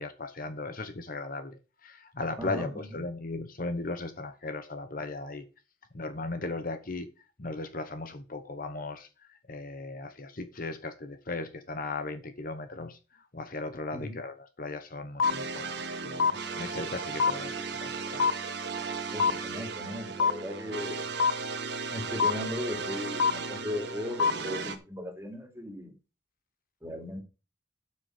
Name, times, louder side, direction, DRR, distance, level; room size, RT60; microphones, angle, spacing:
voice 1, 0.0-5.5 5.9-7.1 7.4-15.7 16.0-18.3, left 2 dB, 45° left, 1.1 m, -37 dB
voice 2, 2.4-3.0 13.9-14.2 19.1-21.0 21.9-25.9 26.8-27.2, left 1 dB, 10° right, 2.6 m, -37 dB
sound 1, 15.2-15.3 16.2-16.3 17.2-17.3 18.2-18.3 19.2-19.3 20.2-20.3 21.2-21.3 22.2-22.3 23.2-23.3 24.2-24.3, left 5 dB, 80° left, 0.8 m, -22 dB
sound 2, 15.2-24.8, right 4 dB, 55° right, 1.5 m, -36 dB
12.0 x 6.4 x 5.0 m
head